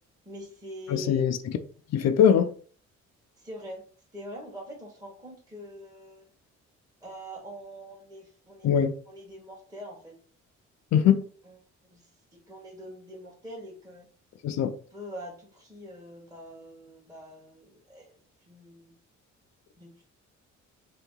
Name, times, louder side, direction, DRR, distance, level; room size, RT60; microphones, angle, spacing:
voice 1, 0.2-1.2 3.4-3.8 4.1-6.3 7.0-8.7 9.1-10.2 11.4-11.6 11.9-14.1 14.9-18.9 19.8-20.0, equal, 10° right, 1.3 m, -44 dB
voice 2, 0.9-1.4 1.9-2.5 8.6-9.0 10.9-11.2 14.4-14.7, left 8 dB, 60° left, 0.5 m, -21 dB
3.2 x 2.8 x 3.7 m
cardioid pair, 90°, 30 cm